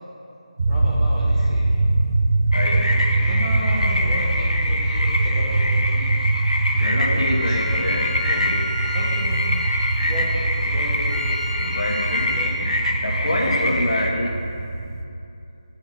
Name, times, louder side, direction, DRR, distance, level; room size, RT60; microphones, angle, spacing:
sound 1, 0.6-15.0, right 2 dB, 35° right, 0.5 m, -23 dB
voice 1, 0.7-1.8 3.1-6.1 7.1-8.1 8.8-9.5 10.0-11.5 12.3-12.7 13.3-14.0, right 1 dB, 10° right, -7 dB, 0.8 m, -33 dB
sound 2, 2.5-14.1, left 1 dB, 65° left, 0.8 m, -25 dB
voice 2, 2.5-3.1 6.7-8.8 11.6-12.4 13.0-14.4, left 1 dB, 50° left, -1 dB, 1.1 m, -27 dB
Bowed string instrument, 7.2-12.6, right 1 dB, 55° right, 2.1 m, -37 dB
8.1 x 5.0 x 5.6 m, 2.7 s
figure-of-eight pair, 160°, 4 cm